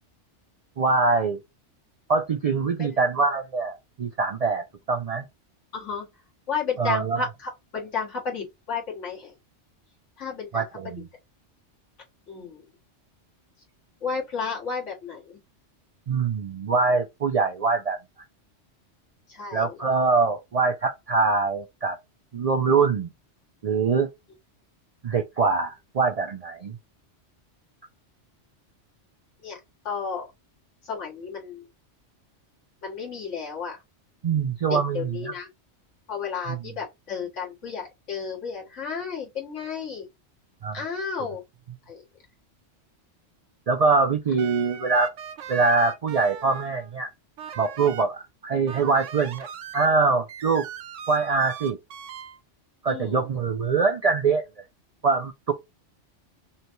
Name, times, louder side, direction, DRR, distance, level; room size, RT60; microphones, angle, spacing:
voice 1, 0.8-1.4 2.1-5.3 6.8-7.2 10.5-11.1 16.1-18.0 19.5-22.0 22.3-23.1 23.6-24.1 25.0-26.8 34.2-35.3 36.5-36.6 40.6-40.8 43.7-45.1 45.5-47.1 47.6-49.5 49.7-50.7 51.1-51.8 52.8-54.4 55.0-55.5, right 4 dB, 65° right, 0.3 m, -23 dB
voice 2, 5.7-6.1 6.5-9.3 10.2-10.6 12.3-12.7 14.0-15.4 19.3-19.8 29.4-29.6 29.8-30.3 30.8-31.7 32.8-33.8 34.7-35.5 36.1-40.1 40.7-41.4 41.9-42.0 52.9-53.2, left 5 dB, 85° left, 2.0 m, -32 dB
sound 1, 44.3-46.9 47.4-48.1 48.7-49.9 50.3-52.4, right 8 dB, 90° right, 1.0 m, -40 dB
5.5 x 2.2 x 3.0 m
omnidirectional pair, 1.2 m